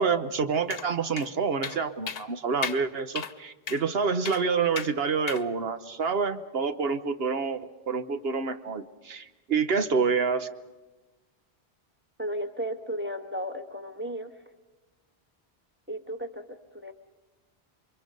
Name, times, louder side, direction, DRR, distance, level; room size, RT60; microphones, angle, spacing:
voice 1, 0.0-10.5, right 5 dB, 70° right, 9 dB, 1.2 m, -27 dB
sound 1, 0.7-0.9 1.2-1.3 1.6-1.8 2.1-2.3 2.6-2.8 3.2-3.3 3.7-3.8 4.3-4.4 4.8-4.9 5.3-5.4, left 6 dB, 65° left, 1.1 m, -34 dB
voice 2, 12.2-14.3 15.9-16.9, equal, 10° right, 6 dB, 1.7 m, -34 dB
28.5 x 24.0 x 5.3 m, 1.2 s
omnidirectional pair, 1.1 m